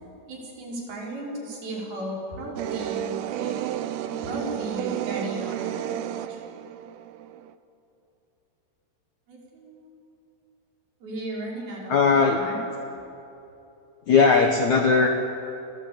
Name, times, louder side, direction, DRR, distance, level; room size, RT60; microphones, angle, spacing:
voice 1, 0.3-3.6 3.9-6.4 9.3-9.9 11.0-12.0 12.4-12.6, right 1 dB, 50° right, -3 dB, 7.0 m, -35 dB
sound 1, 2.6-7.5, right 12 dB, 80° right, 2.4 m, -32 dB
voice 2, 11.9-12.4 14.1-15.1, left 5 dB, 80° left, 4 dB, 1.6 m, -18 dB
29.5 x 21.5 x 8.8 m, 2.9 s
omnidirectional pair, 5.5 m